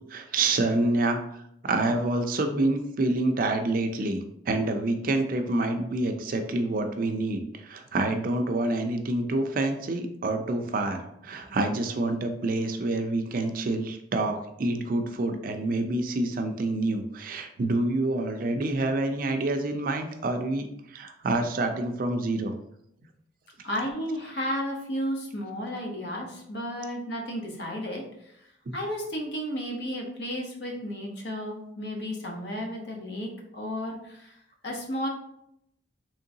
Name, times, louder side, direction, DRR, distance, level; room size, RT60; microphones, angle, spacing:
voice 1, 0.1-1.2 1.6-22.5 28.7-28.8, right 2 dB, 50° right, 6 dB, 0.4 m, -27 dB
voice 2, 23.6-28.3 28.7-34.3 34.6-35.1, equal, 65° left, 0 dB, 0.8 m, -33 dB
3.7 x 3.1 x 2.7 m, 0.76 s
head